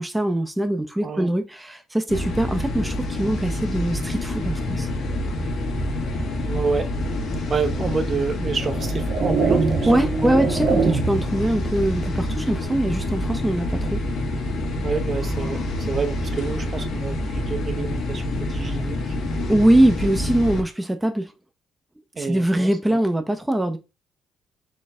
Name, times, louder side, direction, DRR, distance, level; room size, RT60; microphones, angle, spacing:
voice 1, 0.0-4.9 9.9-14.0 19.5-21.3 22.2-23.8, right 1 dB, 10° right, 0.7 m, -22 dB
sound 1, 2.1-20.6, left 1 dB, 70° left, 1.4 m, -27 dB
voice 2, 6.4-6.9 7.5-10.4 14.8-19.1 22.2-23.0, right 4 dB, 40° right, 0.8 m, -28 dB
sound 2, 7.7-7.9 8.6-11.4, right 4 dB, 75° right, 1.8 m, -23 dB
4.2 x 3.2 x 3.6 m
cardioid pair, 85°, 0 cm